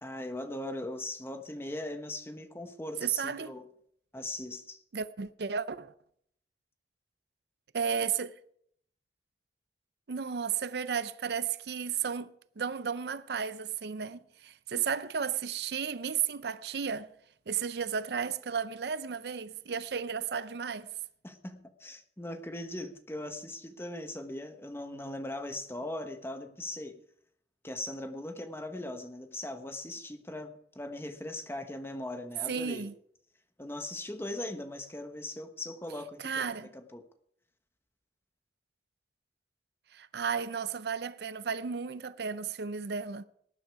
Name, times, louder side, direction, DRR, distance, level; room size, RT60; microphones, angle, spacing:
voice 1, 0.0-3.7 4.1-4.8 21.2-27.0 27.6-32.9 33.6-36.6 36.9-37.0, left 1 dB, 15° left, 1.2 m, -39 dB
voice 2, 3.0-3.5 4.9-5.9 7.7-8.4 10.1-12.3 12.6-17.1 17.5-20.9 32.5-32.9 36.2-36.7 39.9-43.2, right 7 dB, 65° right, 0.5 m, -33 dB
19.0 x 10.0 x 4.8 m
head